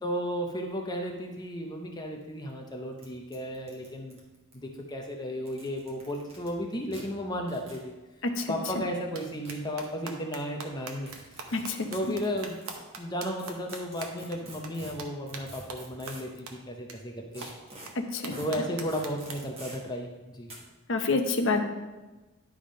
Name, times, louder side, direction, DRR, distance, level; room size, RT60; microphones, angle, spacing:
voice 1, 0.0-4.2 4.5-7.9 8.5-11.5 11.9-12.6 13.0-17.5 18.4-20.5, equal, 20° left, 2 dB, 0.6 m, -34 dB
sound 1, 2.2-2.3 2.5-2.6 3.0-3.1 3.3-4.8 5.4-6.5 6.9-7.0 7.5-7.8 8.9-9.9 11.0-12.8 13.4-16.4 17.3-17.9 18.3-18.5 18.9-19.8 20.5-20.6, right 1 dB, 25° right, 1.3 m, -47 dB
voice 2, 8.2-8.8 11.5-11.9 18.0-18.3 20.9-21.6, left 3 dB, 55° left, 5 dB, 0.7 m, -28 dB
sound 2, 9.1-9.2 9.5-14.4 14.6-14.7 15.0-15.1 15.3-15.4 15.7-15.8 16.1-16.2 16.5-16.6 16.9-17.0 17.4-17.5 17.9-18.0 18.2-19.3, right 5 dB, 75° right, 0.9 m, -40 dB
10.0 x 3.6 x 5.1 m, 1.2 s
head